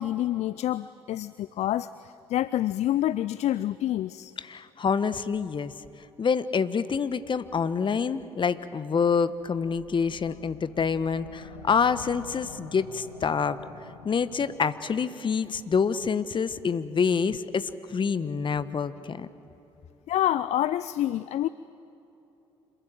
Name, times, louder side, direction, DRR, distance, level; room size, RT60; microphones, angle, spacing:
voice 1, 0.0-4.3 20.1-21.5, left 13 dB, 55° left, 17 dB, 0.5 m, -27 dB
voice 2, 4.4-5.7 6.2-13.6 14.0-19.3, left 6 dB, 35° left, 14 dB, 1.1 m, -27 dB
sound 1, 9.3-14.9, left 4 dB, 85° left, 1.9 m, -47 dB
26.5 x 22.0 x 7.7 m, 3.0 s
figure-of-eight pair, 50°, 14 cm